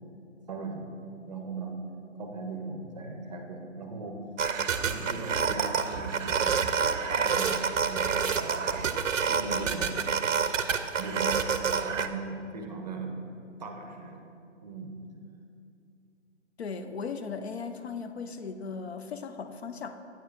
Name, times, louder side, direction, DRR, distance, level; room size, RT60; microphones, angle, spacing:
voice 1, 0.5-0.9 1.3-1.8 2.1-4.3 4.8-6.6 7.1-8.8 9.1-10.2 11.0-11.4 11.8-13.2 13.6-14.3 14.6-15.0, right 3 dB, 35° right, 4 dB, 0.6 m, -38 dB
sound 1, 4.4-12.1, right 6 dB, 85° right, 0.5 m, -28 dB
voice 2, 16.6-20.0, left 5 dB, 60° left, 8 dB, 0.5 m, -37 dB
9.1 x 6.3 x 2.4 m, 2.5 s
figure-of-eight pair, 140°, 37 cm